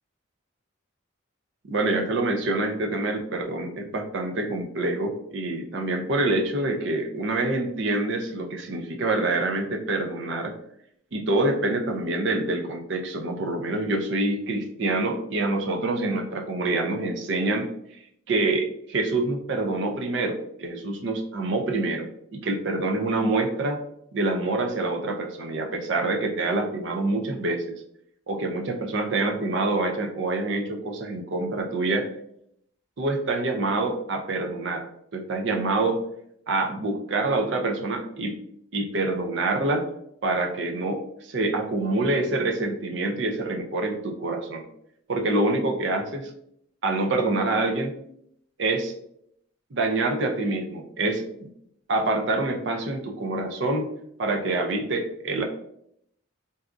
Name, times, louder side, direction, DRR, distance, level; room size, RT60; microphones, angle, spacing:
voice 1, 1.7-10.5 11.1-17.7 18.3-22.1 22.4-23.8 24.1-27.8 28.3-32.1 33.0-34.9 35.1-36.0 36.5-38.4 38.7-39.8 40.2-44.6 45.1-46.3 46.8-47.9 48.6-48.9 49.7-51.5 51.9-53.9 54.2-55.4, right 2 dB, 60° right, 3 dB, 0.4 m, -26 dB
4.0 x 2.3 x 2.4 m, 0.73 s
head